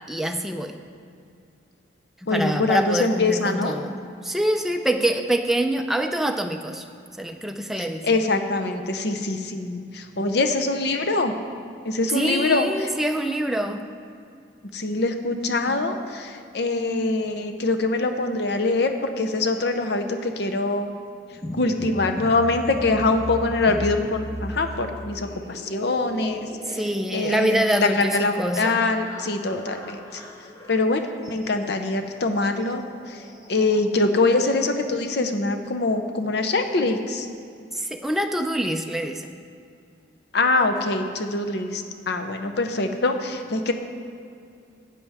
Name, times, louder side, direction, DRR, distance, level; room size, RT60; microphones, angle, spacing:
voice 1, 0.1-0.8 2.2-4.0 4.2-6.8 7.2-8.2 12.1-13.9 15.6-16.0 26.7-28.9 37.7-39.3, right 1 dB, ahead, 4 dB, 0.4 m, -25 dB
voice 2, 2.3-3.8 7.8-11.3 11.8-12.7 14.7-20.9 21.5-26.4 26.7-26.8 27.1-30.2 30.7-32.8 33.1-33.2 33.5-37.3 40.3-43.7, left 2 dB, 55° left, 6 dB, 0.7 m, -24 dB
sound 1, 21.3-34.6, equal, 15° left, 0.8 m, -38 dB
12.5 x 9.2 x 3.5 m, 2.4 s
head